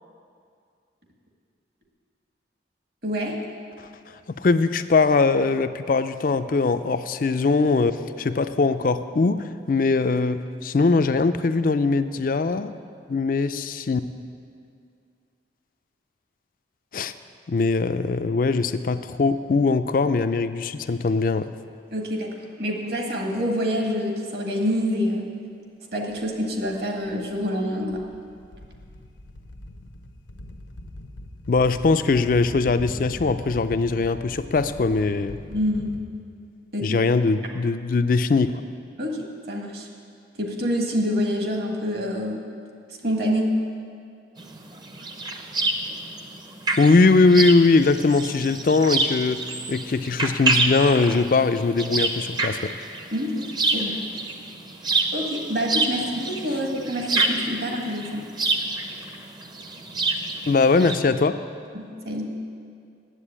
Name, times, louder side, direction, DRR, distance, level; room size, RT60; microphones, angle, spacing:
voice 1, 3.0-3.4 21.9-25.3 25.9-28.0 35.5-36.0 36.7-37.0 39.0-39.9 40.4-42.4 43.0-43.6 53.1-54.0 55.1-58.3 61.7-62.3, equal, 55° right, 1 dB, 1.6 m, -27 dB
voice 2, 4.3-7.9 8.2-12.7 13.1-14.0 16.9-17.1 17.5-21.5 31.5-35.4 36.8-38.5 46.8-49.4 49.7-52.7 60.5-61.4, left 3 dB, 45° left, 11 dB, 0.4 m, -21 dB
sound 1, 26.1-26.2 26.6-36.0, left 1 dB, 85° left, 0.8 m, -40 dB
sound 2, 44.4-61.0, right 3 dB, 25° right, 0.6 m, -27 dB
9.9 x 7.9 x 8.7 m, 2.3 s
head